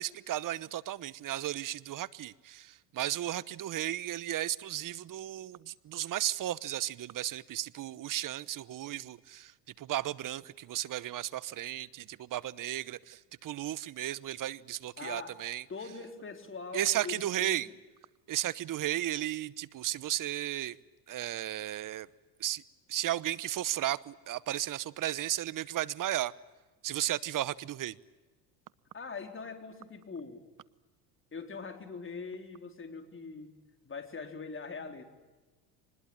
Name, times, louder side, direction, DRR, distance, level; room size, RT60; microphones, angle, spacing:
voice 1, 0.0-15.6 16.7-17.7 18.3-20.8 21.1-22.1 22.4-22.6 22.9-26.3 26.8-28.0, right 13 dB, 40° right, 20 dB, 1.0 m, -34 dB
voice 2, 15.0-15.4 15.7-17.7 28.9-30.4 31.3-33.5 33.8-35.0, left 4 dB, 25° left, 6 dB, 4.2 m, -42 dB
25.0 x 21.0 x 8.9 m, 1.2 s
supercardioid pair, 95°, 49 cm